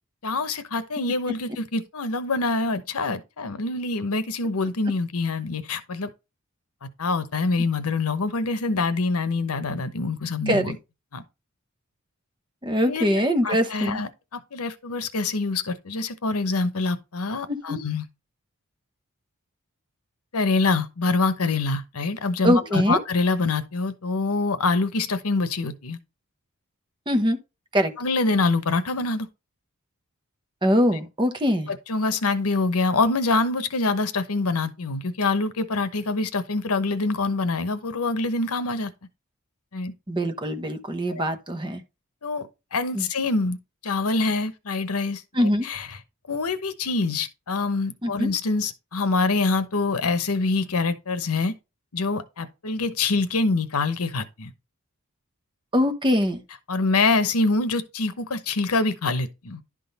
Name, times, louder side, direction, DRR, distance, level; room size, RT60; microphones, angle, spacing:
voice 1, 0.2-6.1 7.0-10.8 11.1-11.2 12.9-18.1 20.3-26.0 28.0-29.3 31.7-38.9 39.7-39.9 41.1-41.2 42.2-43.6 43.8-45.9 46.3-51.6 51.9-54.5 56.7-59.6, left 3 dB, 90° left, 0.9 m, -25 dB
voice 2, 12.6-14.0 17.5-17.8 22.4-23.0 27.1-27.4 27.7-27.9 30.6-31.7 40.1-41.8 42.9-43.1 45.3-45.6 48.0-48.3 55.7-56.4, equal, 20° right, 1.0 m, -23 dB
11.0 x 3.8 x 4.0 m
head